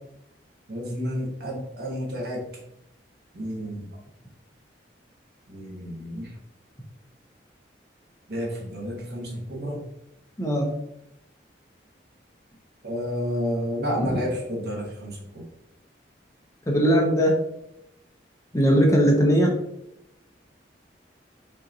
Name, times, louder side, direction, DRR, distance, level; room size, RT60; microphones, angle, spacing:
voice 1, 0.7-2.4 3.3-3.8 5.5-6.3 8.3-9.8 12.8-15.4, equal, 60° right, -2 dB, 1.2 m, -30 dB
voice 2, 10.4-10.8 14.1-14.2 16.7-17.4 18.5-19.6, equal, 15° left, 1 dB, 0.5 m, -19 dB
5.5 x 2.9 x 2.6 m, 0.83 s
head